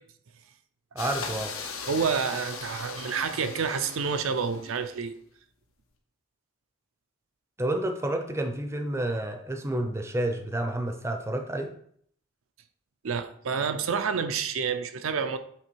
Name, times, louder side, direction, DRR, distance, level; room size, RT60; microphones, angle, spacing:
voice 1, 0.9-1.5 7.6-11.7, right 1 dB, 15° right, 0.5 m, -30 dB
sound 1, 1.0-5.0, left 5 dB, 85° left, 1.2 m, -39 dB
voice 2, 1.9-5.1 13.0-15.4, right 6 dB, 80° right, 0.5 m, -28 dB
7.8 x 3.4 x 4.6 m
head